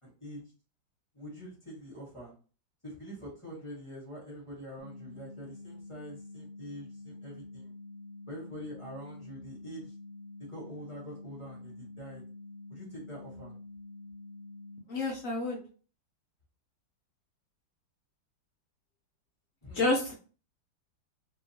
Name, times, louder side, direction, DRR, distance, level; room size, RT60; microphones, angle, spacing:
voice 1, 0.0-0.4 1.1-2.3 2.8-7.7 8.3-9.9 10.4-12.2 12.7-13.6 19.6-19.9, equal, 20° left, -5 dB, 0.9 m, -45 dB
sound 1, 4.8-14.8, left 2 dB, 75° right, 1.3 m, -47 dB
voice 2, 14.9-15.6 19.7-20.1, left 2 dB, 65° left, -2 dB, 0.8 m, -29 dB
2.8 x 2.8 x 2.7 m, 0.38 s
omnidirectional pair, 2.2 m